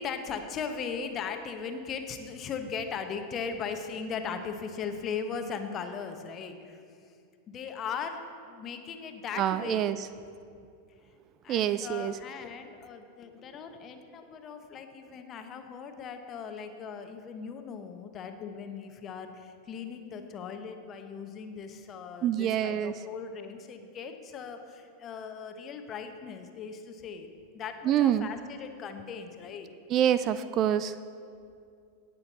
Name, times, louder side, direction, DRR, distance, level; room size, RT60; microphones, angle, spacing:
voice 1, 0.0-6.8 7.5-8.2 8.5-9.9 11.4-29.7, left 6 dB, 30° left, 6 dB, 1.0 m, -38 dB
voice 2, 9.4-10.1 11.5-12.2 22.2-22.9 27.8-28.3 29.9-30.9, right 10 dB, 35° right, 13 dB, 0.3 m, -26 dB
18.0 x 6.9 x 4.1 m, 2.4 s
figure-of-eight pair, 90°, 0 cm